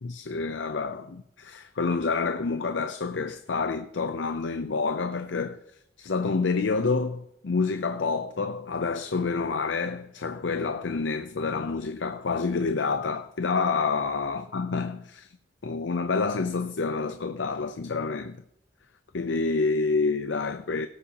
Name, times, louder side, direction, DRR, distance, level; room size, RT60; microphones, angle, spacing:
voice 1, 0.0-5.6 6.0-15.3 15.6-18.4 19.1-20.9, left 4 dB, 85° left, 0.6 m, -28 dB
17.5 x 8.5 x 2.9 m
head